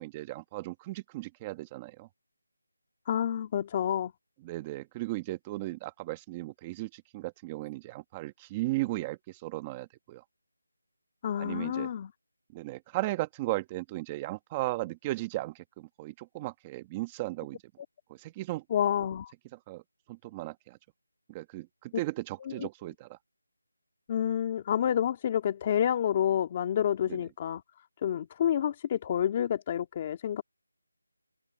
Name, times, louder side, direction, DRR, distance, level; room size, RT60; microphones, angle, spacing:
voice 1, 0.0-2.1 4.4-10.2 11.4-11.9 12.5-17.6 18.1-18.6 19.7-19.8 20.1-20.8 21.3-23.2 27.1-27.2, right 19 dB, 15° right, 1.4 m, -36 dB
voice 2, 3.1-4.1 11.2-12.1 18.7-19.3 22.4-22.7 24.1-27.6 28.0-30.4, left 9 dB, 20° left, 2.2 m, -29 dB
figure-of-eight pair, 170°, 0 cm